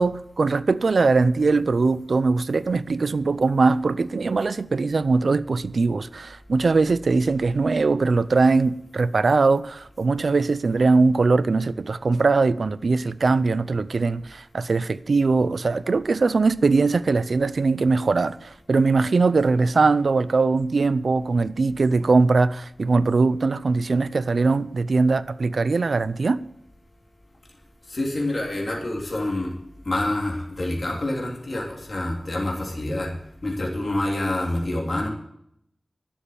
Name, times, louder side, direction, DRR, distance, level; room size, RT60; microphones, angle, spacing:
voice 1, 0.0-26.4, right 3 dB, 75° right, 0.5 m, -21 dB
voice 2, 27.9-29.6 29.8-33.1 33.4-35.1, left 1 dB, 55° left, 3.4 m, -27 dB
12.0 x 7.1 x 8.7 m
wide cardioid pair, 75°, 0 cm